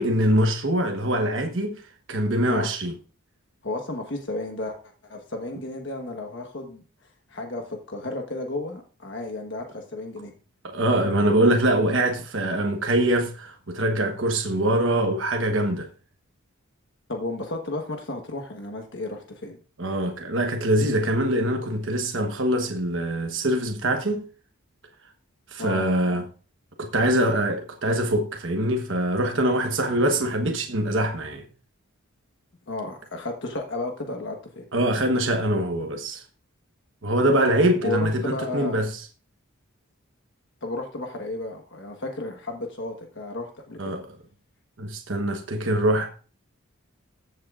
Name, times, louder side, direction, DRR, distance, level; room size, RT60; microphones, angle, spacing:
voice 1, 0.0-1.7 2.1-2.9 10.6-15.9 19.8-24.2 25.5-26.3 26.8-31.4 34.7-36.2 37.0-38.9 43.8-44.1 44.8-46.1, right 1 dB, 60° right, 1.2 m, -23 dB
voice 2, 3.6-4.8 5.0-6.8 7.3-10.3 17.1-19.6 25.6-25.9 32.7-34.7 37.5-38.8 40.6-43.9, left 2 dB, 55° left, 1.3 m, -33 dB
14.5 x 8.0 x 2.5 m
head